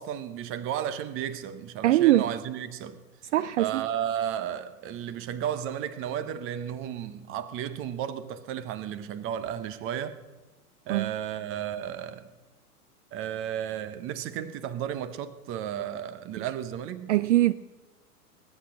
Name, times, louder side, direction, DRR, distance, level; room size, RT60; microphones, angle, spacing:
voice 1, 0.0-3.0 3.6-10.2 10.9-12.3 13.1-17.1, right 10 dB, 30° right, 0.9 m, -33 dB
voice 2, 1.8-2.3 3.3-3.8 10.9-11.1 17.1-17.5, right 15 dB, 50° right, 0.5 m, -21 dB
20.0 x 8.5 x 6.4 m
hypercardioid pair, 110°, 46 cm